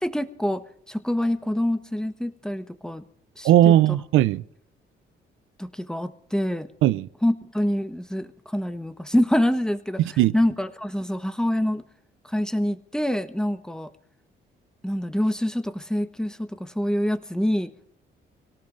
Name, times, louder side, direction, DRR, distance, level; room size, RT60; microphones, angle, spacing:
voice 1, 0.0-0.6 0.9-3.0 3.4-3.7 5.6-6.7 7.2-8.3 8.5-10.0 10.3-11.8 12.3-13.9 14.8-17.9, left 1 dB, 5° left, 10 dB, 1.1 m, -26 dB
voice 2, 3.4-4.4 6.8-7.1 10.0-10.3, right 13 dB, 90° right, 17 dB, 0.5 m, -18 dB
26.0 x 18.0 x 2.6 m, 0.68 s
cardioid pair, 90°, 20 cm